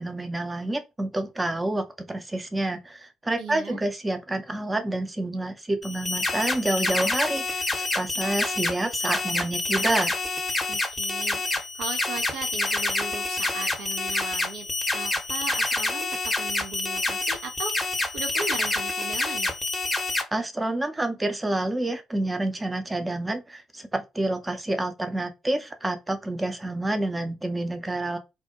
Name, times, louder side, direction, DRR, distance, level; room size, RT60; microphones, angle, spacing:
voice 1, 0.0-7.6 7.9-10.1 20.3-28.2, right 2 dB, 20° right, 0.6 m, -28 dB
voice 2, 3.3-3.8 10.7-14.7 14.9-17.9 18.1-19.5, right 4 dB, 65° right, 0.5 m, -37 dB
sound 1, 5.8-20.2, left 2 dB, 15° left, 0.8 m, -27 dB
2.3 x 2.1 x 2.8 m
figure-of-eight pair, 45°, 0 cm